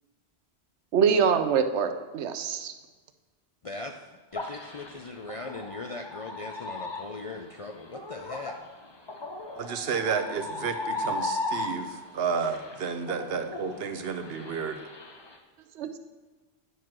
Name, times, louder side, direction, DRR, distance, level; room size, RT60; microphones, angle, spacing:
voice 1, 0.9-2.7 15.8-16.0, right 6 dB, 90° right, 8 dB, 1.0 m, -24 dB
voice 2, 4.3-8.5, left 3 dB, 50° left, 4 dB, 0.4 m, -39 dB
sound 1, 4.3-12.1 12.4-15.4, left 2 dB, 25° left, 0.8 m, -36 dB
voice 3, 9.6-14.8, right 6 dB, 65° right, 8 dB, 0.9 m, -31 dB
9.5 x 4.6 x 6.0 m, 1.3 s
omnidirectional pair, 1.1 m